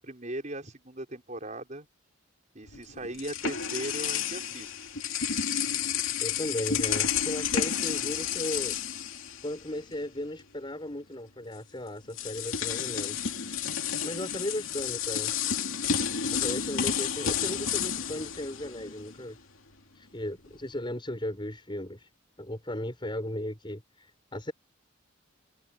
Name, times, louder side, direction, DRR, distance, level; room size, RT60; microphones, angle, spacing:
voice 1, 0.0-1.9 2.5-4.7, right 1 dB, 35° right, 5.6 m, -38 dB
sound 1, 2.7-9.9 10.2-10.4 11.5-11.6 12.1-19.3, left 8 dB, 90° left, 2.5 m, -31 dB
voice 2, 6.2-8.8 9.4-13.2 14.0-15.4 16.3-19.4 19.9-22.1 22.4-24.5, left 1 dB, 25° left, 5.8 m, -36 dB
head